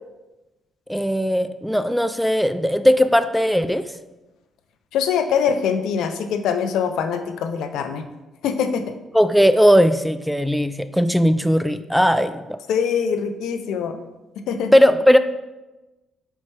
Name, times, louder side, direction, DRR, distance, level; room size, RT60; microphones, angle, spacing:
voice 1, 0.9-3.9 9.1-12.6 14.7-15.2, equal, ahead, 11 dB, 0.3 m, -18 dB
voice 2, 4.9-8.0 8.4-8.9 12.7-14.0 14.5-14.7, left 7 dB, 85° left, 8 dB, 0.5 m, -23 dB
5.6 x 4.5 x 4.5 m, 1.1 s
cardioid pair, 90°, 0 cm